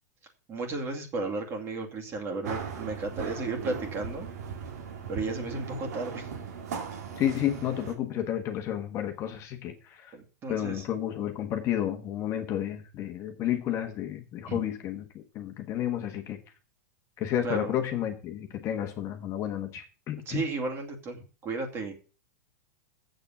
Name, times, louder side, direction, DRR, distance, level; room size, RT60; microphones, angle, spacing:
voice 1, 0.5-4.3 5.1-6.3 10.1-10.9 14.5-14.6 17.4-17.8 20.3-21.9, right 3 dB, 30° right, 3 dB, 2.4 m, -34 dB
sound 1, 2.4-7.9, right 6 dB, 80° right, 2.4 m, -38 dB
voice 2, 7.2-10.1 10.5-16.4 17.2-20.5, left 11 dB, 35° left, 6 dB, 1.4 m, -31 dB
8.0 x 6.7 x 7.2 m, 0.36 s
supercardioid pair, 135°, 9 cm